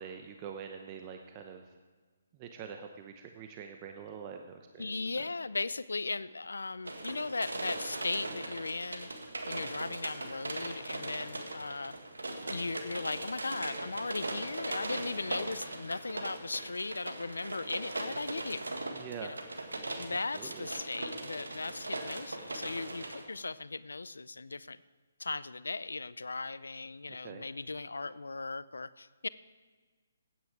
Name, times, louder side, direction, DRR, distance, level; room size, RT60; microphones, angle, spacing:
voice 1, 0.0-1.8 2.3-4.9 18.9-19.4 20.3-20.7 27.2-27.4, right 7 dB, 30° right, 4 dB, 0.8 m, -44 dB
voice 2, 4.8-9.1 9.5-12.0 12.4-18.7 19.2-19.4 20.0-24.8 25.2-29.3, left 3 dB, 85° left, 17 dB, 0.4 m, -37 dB
sound 1, 6.9-23.2, right 2 dB, 90° right, 1.7 m, -40 dB
15.5 x 9.4 x 4.7 m, 1.4 s
hypercardioid pair, 145°, 0 cm